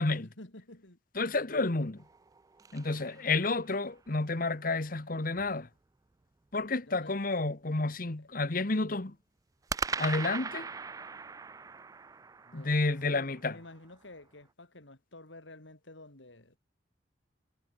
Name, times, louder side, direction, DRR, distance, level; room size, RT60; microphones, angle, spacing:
voice 1, 0.1-1.0 2.9-3.5 6.8-7.2 8.2-8.3 12.5-16.6, left 2 dB, 85° left, 4.0 m, -51 dB
voice 2, 1.1-2.0 2.7-5.7 6.5-9.1 10.0-10.7 12.5-13.6, left 3 dB, 50° left, 1.3 m, -30 dB
sound 1, 2.0-3.9 9.7-14.0, right 5 dB, 20° right, 0.3 m, -40 dB
head